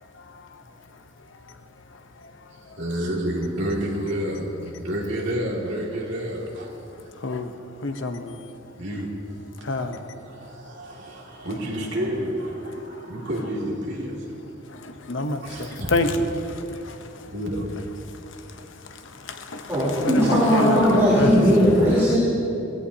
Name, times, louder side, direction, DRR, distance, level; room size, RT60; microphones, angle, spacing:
voice 1, 2.5-6.9 8.8-9.2 9.7-14.3 15.4-15.9 17.3-17.9, equal, 65° right, 2.3 m, -30 dB
voice 2, 7.2-7.5 7.8-8.4 9.6-10.0 14.7-17.0 19.2-21.7, left 2 dB, 75° left, 0.9 m, -27 dB
voice 3, 19.7-22.2, equal, 15° right, 3.4 m, -18 dB
17.0 x 16.0 x 2.8 m
head